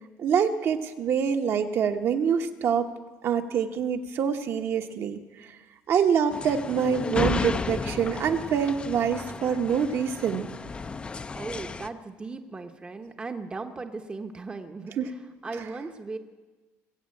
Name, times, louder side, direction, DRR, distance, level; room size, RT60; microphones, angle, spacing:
voice 1, 0.2-2.9 3.2-5.2 5.9-10.5 15.0-15.1, right 7 dB, 50° right, 5 dB, 1.1 m, -25 dB
sound 1, 6.3-11.9, left 4 dB, 20° left, 0.5 m, -33 dB
voice 2, 11.3-16.2, right 3 dB, 20° right, 6 dB, 0.9 m, -37 dB
21.0 x 8.1 x 8.6 m, 1.3 s
cardioid pair, 140°, 6 cm